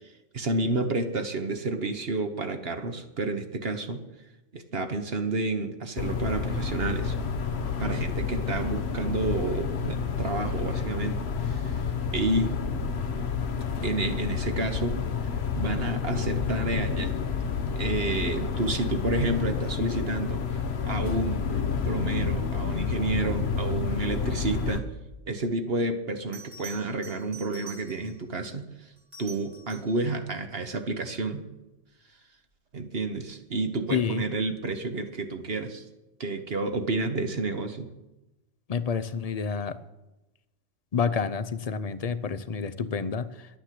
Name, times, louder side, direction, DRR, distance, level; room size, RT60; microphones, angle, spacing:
voice 1, 0.3-4.0 4.5-7.2 7.8-11.8 12.1-12.6 13.8-15.0 15.5-17.2 17.8-21.4 21.8-24.8 25.3-28.9 29.2-31.5 32.7-35.8 36.2-37.9, right 2 dB, 55° right, 6 dB, 1.3 m, -30 dB
sound 1, 6.0-24.8, left 6 dB, 60° left, 1.1 m, -29 dB
Bell, 26.3-28.3 29.0-30.0 32.7-33.0, right 3 dB, 75° right, 4.1 m, -46 dB
voice 2, 33.9-34.2 38.7-39.8 40.9-43.5, left 6 dB, 40° left, 13 dB, 0.6 m, -29 dB
11.5 x 9.2 x 7.6 m, 1.0 s
omnidirectional pair, 1.3 m